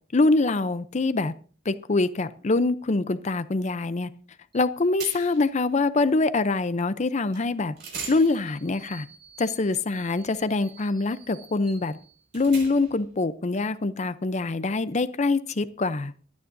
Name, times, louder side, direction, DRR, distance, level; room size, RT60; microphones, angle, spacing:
voice 1, 0.1-1.3 1.7-4.1 4.5-7.7 8.1-9.1 9.4-12.0 12.3-16.1, left 3 dB, 35° left, 13 dB, 0.6 m, -24 dB
sound 1, 4.5-4.7 5.0-5.5 7.3-7.4 7.8-13.1, right 5 dB, 60° right, 5.6 m, -43 dB
25.5 x 9.5 x 2.6 m, 0.40 s
head